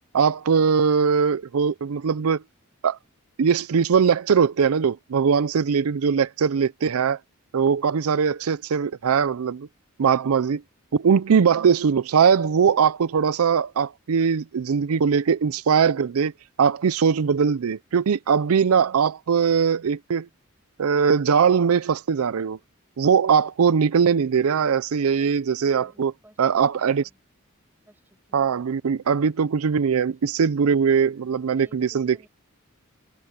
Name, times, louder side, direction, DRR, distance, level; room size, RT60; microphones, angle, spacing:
voice 1, 0.1-2.4 2.8-3.0 3.4-7.2 7.5-9.7 10.0-10.6 10.9-16.3 16.6-20.3 20.8-22.6 23.0-26.1 26.4-27.0 28.3-32.3, right 6 dB, 85° right, 0.5 m, -21 dB
voice 2, 25.2-27.2 27.9-28.7 31.5-32.3, right 1 dB, 10° right, 7.6 m, -57 dB
head